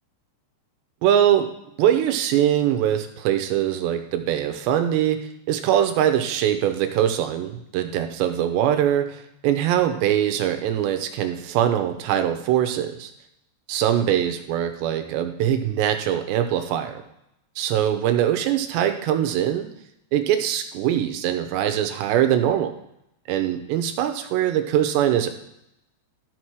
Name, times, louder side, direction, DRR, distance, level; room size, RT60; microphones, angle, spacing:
voice 1, 1.0-1.5 1.8-5.2 5.5-13.1 13.7-17.0 17.6-19.7 20.1-22.7 23.3-25.3, right 10 dB, 80° right, 7 dB, 2.8 m, -22 dB
13.0 x 5.9 x 4.7 m, 0.81 s
omnidirectional pair, 5.4 m